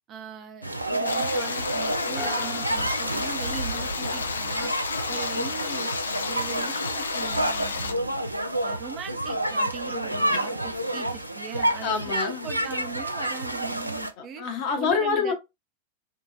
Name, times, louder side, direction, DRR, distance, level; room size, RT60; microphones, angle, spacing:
voice 1, 0.1-4.7 5.1-5.9 6.3-8.2 8.6-14.4 14.8-15.3, right 7 dB, 35° right, 0.6 m, -40 dB
sound 1, 0.6-14.1, right 1 dB, 85° right, 0.4 m, -29 dB
sound 2, 1.0-7.9, left 4 dB, 75° left, 0.4 m, -31 dB
sound 3, 2.2-4.4, equal, 10° left, 0.8 m, -41 dB
voice 2, 11.8-12.5 14.2-15.3, left 5 dB, 45° left, 0.9 m, -26 dB
3.9 x 2.3 x 2.2 m
figure-of-eight pair, 90°, 0 cm